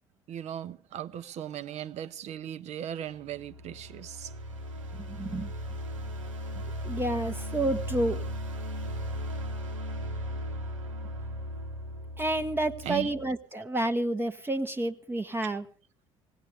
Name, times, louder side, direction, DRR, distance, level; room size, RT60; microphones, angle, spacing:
voice 1, 0.3-4.3 12.8-13.1, right 10 dB, 45° right, 0.7 m, -38 dB
sound 1, 3.1-13.3, equal, 80° right, 1.1 m, -37 dB
voice 2, 5.0-5.5 6.8-8.2 12.2-15.6, right 2 dB, 15° right, 0.9 m, -29 dB
21.0 x 17.0 x 3.5 m
figure-of-eight pair, 60°, 16 cm